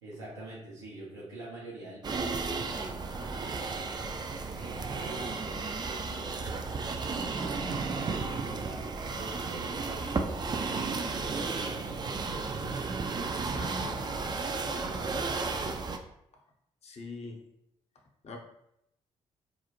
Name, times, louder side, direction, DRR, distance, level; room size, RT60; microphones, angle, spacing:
voice 1, 0.0-3.6 4.5-13.5 14.6-16.0, right 2 dB, 90° right, -7 dB, 0.8 m, -46 dB
sound 1, 2.0-16.0, right 4 dB, 30° right, 0.3 m, -33 dB
voice 2, 13.4-14.1 16.8-17.5 18.2-18.4, left 3 dB, 45° left, 1 dB, 0.6 m, -44 dB
2.5 x 2.0 x 2.8 m, 0.80 s
hypercardioid pair, 40°, 15 cm